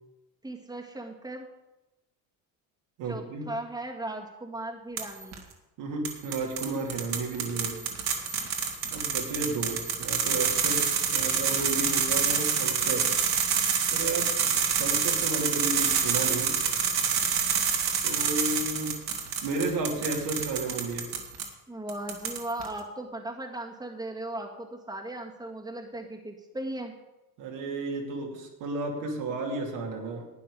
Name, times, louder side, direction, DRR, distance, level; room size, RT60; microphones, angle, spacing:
voice 1, 0.4-1.5 3.1-5.4 21.7-26.9, right 1 dB, 10° right, 1 dB, 1.9 m, -37 dB
voice 2, 3.0-3.5 5.8-7.9 8.9-13.1 13.9-16.6 18.0-19.0 19.4-21.1 27.4-30.3, right 3 dB, 70° right, 0 dB, 2.8 m, -33 dB
sound 1, 5.0-5.4 6.0-21.5 21.9-22.7, right 6 dB, 55° right, 2.3 m, -27 dB
12.0 x 9.1 x 5.0 m, 0.99 s
supercardioid pair, 80°, 45 cm